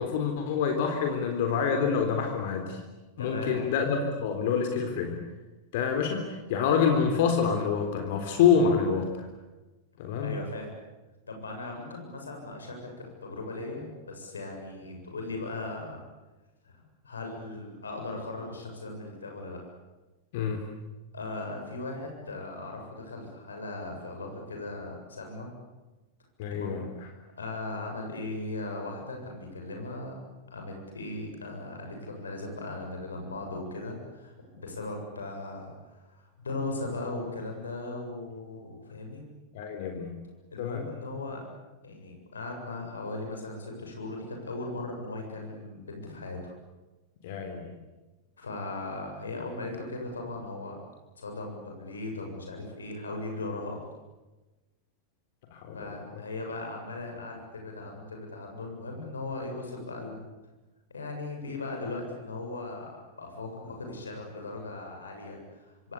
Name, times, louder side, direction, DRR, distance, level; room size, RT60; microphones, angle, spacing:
voice 1, 0.0-2.8 3.2-5.2 5.7-9.3 10.0-10.4 20.3-20.7 26.4-26.9 39.5-40.1 40.6-40.8 47.2-47.7 55.5-56.0, left 6 dB, 50° left, 4 dB, 3.8 m, -27 dB
voice 2, 3.2-3.6 10.2-10.7 11.3-16.0 16.6-16.7 17.0-19.6 21.1-25.5 26.5-26.8 27.4-30.2 30.5-39.2 40.5-41.5 41.8-46.5 48.4-50.8 51.2-53.8 55.7-60.2 60.9-65.9, left 2 dB, 75° left, 2 dB, 7.5 m, -38 dB
27.0 x 25.5 x 8.4 m, 1.1 s
figure-of-eight pair, 90°, 0 cm